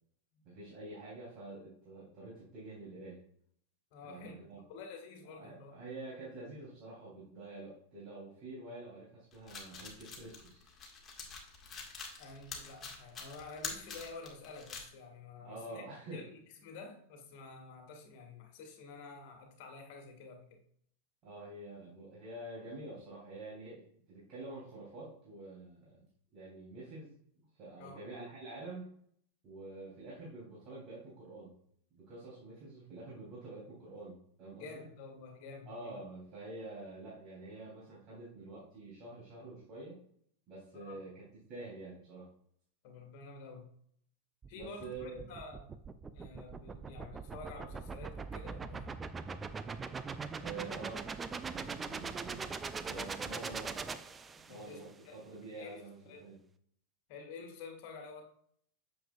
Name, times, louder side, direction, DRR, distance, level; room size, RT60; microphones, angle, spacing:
voice 1, 0.4-3.2 4.0-4.6 5.4-10.7 15.4-16.3 21.2-26.0 26.3-27.1 27.6-28.9 29.4-31.5 31.9-34.8 35.7-40.0 40.5-41.2 41.5-42.3 44.5-45.3 50.4-53.7 54.5-56.4, right 2 dB, 35° right, -8 dB, 3.3 m, -47 dB
voice 2, 3.9-5.7 12.2-15.8 16.1-20.6 27.8-28.1 34.6-36.0 40.7-41.0 42.8-43.7 44.5-45.8 46.1-48.9 54.3-55.2 55.5-56.2 57.1-58.2, left 4 dB, 45° left, 4 dB, 1.8 m, -50 dB
sound 1, 9.3-14.9, left 4 dB, 20° left, 1.8 m, -45 dB
sound 2, 44.4-54.7, right 5 dB, 15° right, 0.4 m, -41 dB
9.0 x 6.9 x 2.4 m, 0.65 s
figure-of-eight pair, 90°, 0 cm